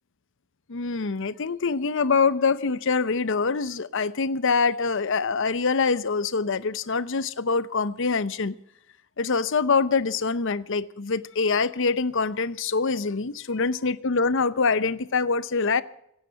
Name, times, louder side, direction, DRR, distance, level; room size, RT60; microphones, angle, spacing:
voice 1, 0.7-8.5 9.2-15.8, left 4 dB, 65° left, 0.7 m, -24 dB
26.0 x 9.1 x 5.7 m
head